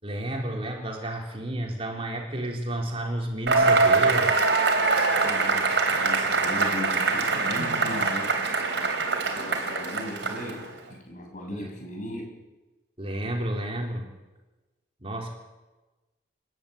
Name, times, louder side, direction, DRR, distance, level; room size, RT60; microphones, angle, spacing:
voice 1, 0.0-4.5 11.5-11.7 13.0-14.0 15.0-15.3, right 1 dB, 30° right, 0 dB, 4.0 m, -31 dB
Cheering / Applause / Crowd, 3.5-10.7, right 3 dB, 75° right, 3.8 m, -23 dB
voice 2, 4.8-12.4, left 1 dB, 45° left, 1 dB, 7.5 m, -38 dB
28.5 x 12.0 x 8.9 m, 1.1 s
head